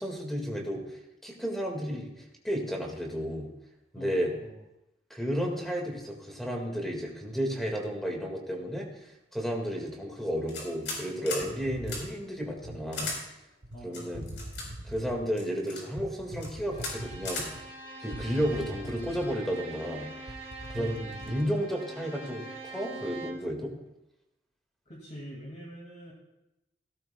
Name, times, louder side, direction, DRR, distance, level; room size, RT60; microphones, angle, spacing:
voice 1, 0.0-3.5 3.9-4.3 5.1-13.3 13.8-14.3 14.8-17.7 18.0-20.1 20.7-23.7, equal, ahead, 1 dB, 1.9 m, -33 dB
voice 2, 3.9-4.6 13.7-14.4 20.8-21.2 24.9-26.1, equal, 40° left, -3 dB, 2.3 m, -44 dB
sound 1, 10.5-11.0 11.3-11.4 11.9-12.0 12.9-13.2 13.9-14.6 15.4-15.8 16.3-16.5 16.8-16.9 17.2-17.5, left 3 dB, 80° left, 4.3 m, -35 dB
sound 2, 11.4-12.9 13.6-13.8 14.1-15.3 16.0-17.6 18.1-19.6 19.9-20.0 20.3-21.5, right 1 dB, 75° right, 1.3 m, -42 dB
Bowed string instrument, 16.7-23.5, right 2 dB, 35° right, 1.7 m, -43 dB
16.5 x 13.5 x 2.3 m, 0.92 s
head